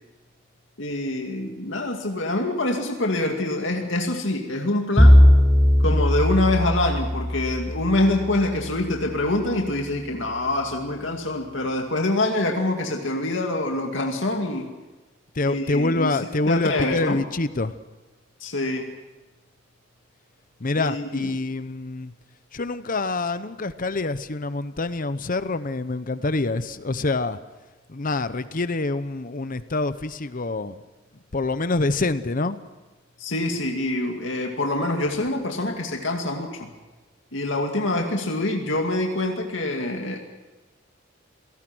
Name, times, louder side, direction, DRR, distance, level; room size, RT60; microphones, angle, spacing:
voice 1, 0.8-5.3 5.8-14.7 15.4-16.2 16.5-17.2 18.4-18.9 20.8-21.3 33.2-36.7 37.3-40.2, left 2 dB, 70° left, 2 dB, 2.4 m, -25 dB
Bowed string instrument, 5.0-9.2, equal, 5° left, 0.8 m, -18 dB
voice 2, 15.3-17.7 20.6-22.1 22.5-27.4 27.9-30.8 31.3-32.6, left 2 dB, 45° left, 13 dB, 0.9 m, -26 dB
27.5 x 18.5 x 6.3 m, 1.1 s
head